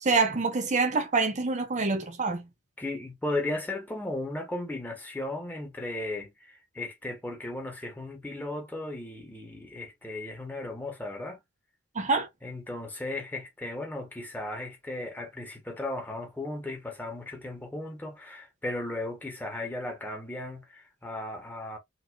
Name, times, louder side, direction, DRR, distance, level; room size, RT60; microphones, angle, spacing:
voice 1, 0.0-2.5 11.9-12.3, right 4 dB, 35° right, 0.9 m, -26 dB
voice 2, 2.8-11.4 12.4-21.8, left 2 dB, 10° left, 1.2 m, -36 dB
3.8 x 2.7 x 2.4 m
head